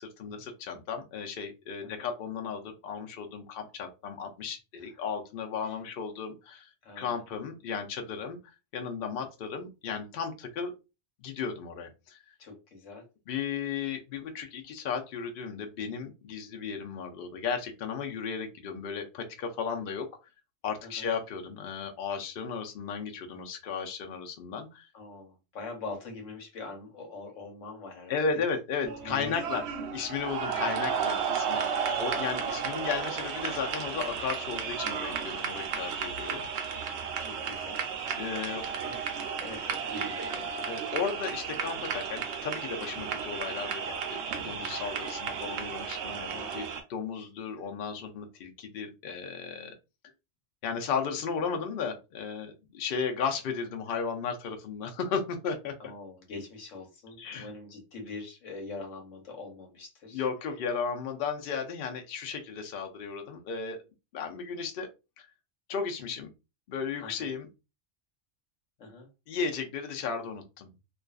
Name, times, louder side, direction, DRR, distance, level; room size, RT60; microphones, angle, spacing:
voice 1, 0.0-6.7 7.0-8.4 8.7-10.7 11.2-12.2 13.3-20.1 20.6-24.9 28.1-29.6 29.9-36.4 38.2-38.6 40.7-49.7 50.6-55.7 57.2-57.5 60.1-63.8 64.1-64.9 65.2-65.3 65.7-66.3 66.7-67.5 69.3-70.7, left 6 dB, 60° left, 4 dB, 0.6 m, -35 dB
voice 2, 6.8-7.2 12.4-13.0 20.8-21.1 24.9-28.4 28.8-29.5 30.6-31.2 31.9-32.1 37.2-37.9 38.2-39.1 39.4-40.5 46.3-46.5 55.8-60.2 67.0-67.3 68.8-69.1, left 3 dB, 80° left, 2 dB, 1.2 m, -44 dB
sound 1, 28.8-46.8, right 6 dB, 65° right, 0.8 m, -33 dB
2.4 x 2.3 x 2.3 m, 0.27 s
omnidirectional pair, 1.3 m